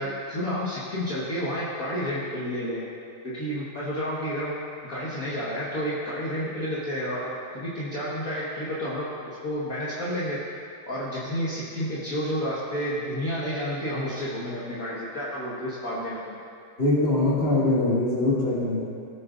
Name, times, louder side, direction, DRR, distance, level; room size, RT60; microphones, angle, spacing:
voice 1, 0.0-2.8 3.2-4.6 4.8-10.4 10.9-16.4, equal, 45° left, -9 dB, 1.9 m, -30 dB
voice 2, 16.8-18.8, left 2 dB, 30° left, -8 dB, 2.7 m, -22 dB
19.0 x 8.4 x 2.6 m, 2.5 s
omnidirectional pair, 2.3 m